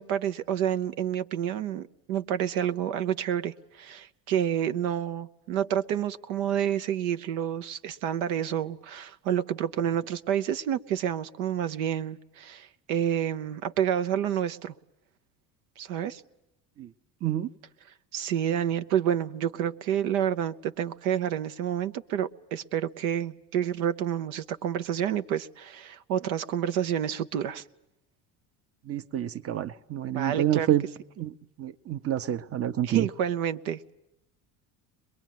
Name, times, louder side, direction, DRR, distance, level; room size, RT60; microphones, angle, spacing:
voice 1, 0.0-14.7 15.8-16.2 18.1-27.6 30.1-30.7 32.8-33.9, right 9 dB, 90° right, 0.9 m, -29 dB
voice 2, 28.9-30.8 31.2-31.3 31.6-33.1, right 11 dB, 35° right, 0.8 m, -28 dB
22.5 x 22.0 x 9.3 m
supercardioid pair, 95°, 41 cm